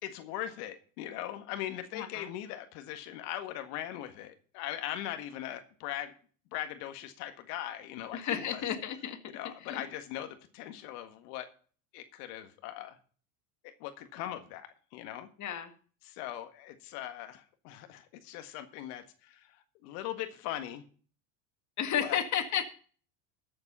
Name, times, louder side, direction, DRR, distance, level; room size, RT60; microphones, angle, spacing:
voice 1, 0.0-6.1 6.5-8.6 9.3-11.5 11.9-13.0 13.6-15.3 16.0-20.8 22.0-22.2, left 12 dB, 75° left, 8 dB, 1.8 m, -40 dB
voice 2, 1.9-2.3 8.1-9.2 9.6-9.8 15.4-15.7 21.8-22.6, left 9 dB, 40° left, 7 dB, 1.9 m, -32 dB
13.5 x 7.8 x 5.4 m, 0.41 s
supercardioid pair, 115°, 46 cm